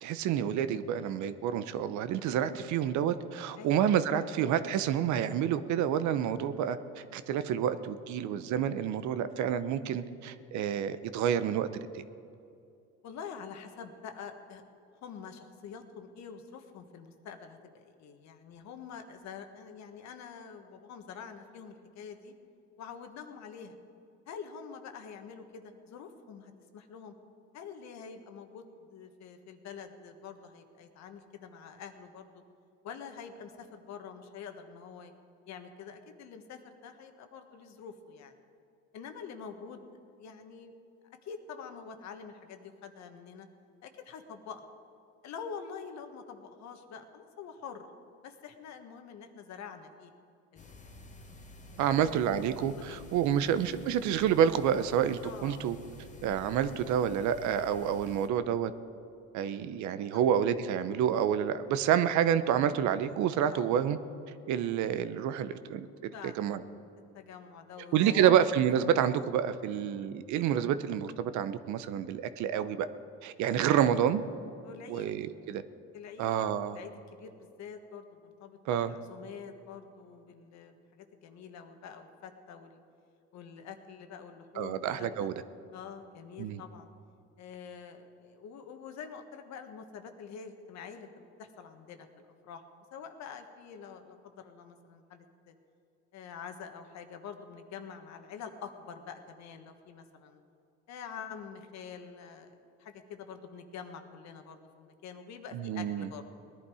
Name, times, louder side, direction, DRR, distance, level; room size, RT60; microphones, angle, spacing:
voice 1, 0.0-12.0 51.8-55.8 56.2-58.7 59.3-64.0 64.5-66.6 67.9-72.9 73.2-74.2 74.9-75.6 76.2-76.8 78.7-78.9 84.6-85.3 86.4-86.6 105.5-106.1, right 9 dB, 65° right, 13 dB, 0.8 m, -28 dB
voice 2, 2.5-2.9 3.6-3.9 13.0-14.6 15.0-22.3 22.8-23.8 24.3-27.1 27.5-32.4 32.8-35.1 35.5-38.3 38.9-39.8 40.2-40.7 41.2-43.5 43.8-44.7 45.2-47.9 48.2-50.1 50.5-51.2 51.7-52.1 52.8-53.0 55.2-55.7 59.6-59.8 60.1-60.2 63.5-63.7 66.1-66.4 67.1-68.3 69.9-70.1 74.6-75.1 75.9-82.8 83.3-85.3 85.7-86.9 87.4-91.1 91.4-92.6 92.9-95.5 96.1-100.4 100.9-106.2, left 6 dB, 60° left, 7 dB, 1.4 m, -46 dB
sound 1, 50.6-58.3, left 1 dB, 25° left, 1.5 m, -50 dB
19.5 x 11.0 x 4.9 m, 2.5 s
supercardioid pair, 95°, 31 cm